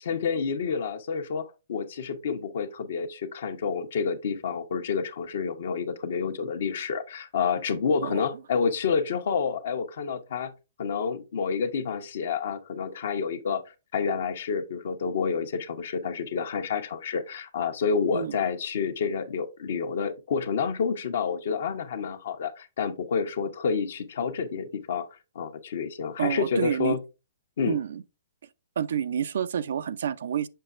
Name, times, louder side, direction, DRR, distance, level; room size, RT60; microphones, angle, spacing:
voice 1, 0.0-10.5 10.8-13.6 13.9-25.1 25.3-27.0 27.6-27.8, left 6 dB, 65° left, 1.0 m, -29 dB
voice 2, 26.2-27.0 27.7-28.0 28.8-30.5, right 8 dB, 70° right, 0.4 m, -28 dB
6.7 x 5.7 x 2.4 m
hypercardioid pair, 135°, 0 cm